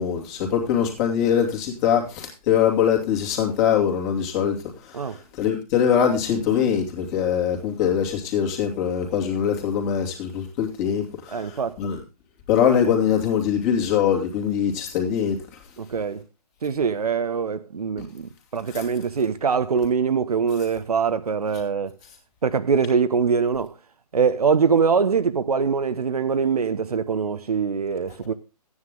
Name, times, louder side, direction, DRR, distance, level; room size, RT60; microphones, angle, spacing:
voice 1, 0.0-12.0 12.5-15.4 18.7-18.8, left 8 dB, 25° left, 2.6 m, -23 dB
voice 2, 11.3-11.8 15.8-16.2 16.6-21.9 22.4-23.7 24.1-28.3, right 6 dB, 65° right, 1.0 m, -23 dB
12.5 x 9.7 x 3.7 m
figure-of-eight pair, 150°, 21 cm